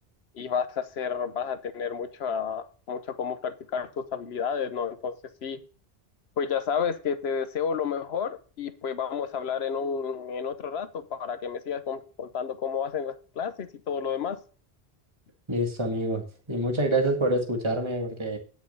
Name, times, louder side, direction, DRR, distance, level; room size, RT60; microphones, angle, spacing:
voice 1, 0.3-5.1 5.4-5.6 6.4-14.4, left 6 dB, 75° left, 1.1 m, -31 dB
voice 2, 15.5-18.4, right 1 dB, 25° right, 1.8 m, -27 dB
9.5 x 6.4 x 5.4 m
omnidirectional pair, 1.1 m